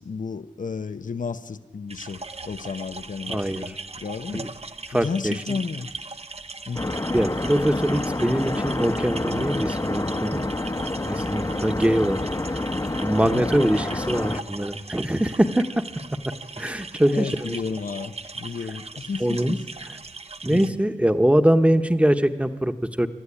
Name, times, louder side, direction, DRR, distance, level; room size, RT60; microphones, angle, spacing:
voice 1, 0.0-4.5 5.0-5.9 6.7-6.9 13.2-13.5 17.1-19.6 20.5-20.8, left 5 dB, 85° left, 0.8 m, -32 dB
sound 1, 1.9-20.7, right 3 dB, 50° right, 1.0 m, -39 dB
voice 2, 3.3-3.6 4.3-4.5 4.9-5.6 7.1-10.4 11.0-12.2 13.0-15.9 16.6-17.6 19.2-19.6 20.4-23.1, right 1 dB, 10° right, 1.2 m, -23 dB
sound 2, 6.8-14.4, left 2 dB, 25° left, 0.9 m, -28 dB
27.0 x 13.0 x 10.0 m
wide cardioid pair, 60°, 13 cm